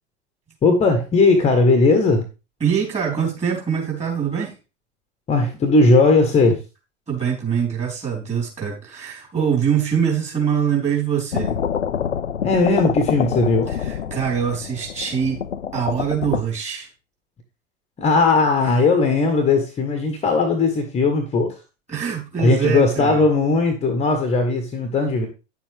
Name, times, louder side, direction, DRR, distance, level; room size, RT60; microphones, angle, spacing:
voice 1, 0.6-2.2 5.3-6.6 12.4-13.7 18.0-21.6 22.4-25.3, left 3 dB, 20° left, 6 dB, 1.3 m, -18 dB
voice 2, 2.6-4.5 7.1-11.5 13.7-15.4 15.7-16.9 21.9-23.2, right 7 dB, 20° right, -1 dB, 3.8 m, -23 dB
sound 1, 11.3-16.4, left 8 dB, 75° left, 0.7 m, -26 dB
10.0 x 7.4 x 3.4 m, 0.29 s
figure-of-eight pair, 90°, 36 cm